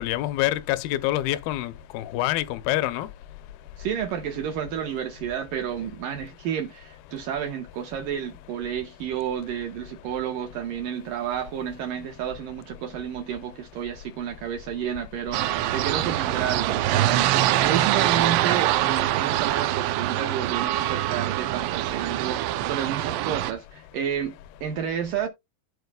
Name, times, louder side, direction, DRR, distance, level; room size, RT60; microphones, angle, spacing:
voice 1, 0.0-3.1, left 15 dB, 80° left, 2.1 m, -26 dB
voice 2, 3.8-25.3, right 9 dB, 70° right, 2.2 m, -31 dB
sound 1, 15.3-23.5, right 14 dB, 90° right, 3.0 m, -24 dB
14.5 x 4.8 x 2.3 m
omnidirectional pair, 5.0 m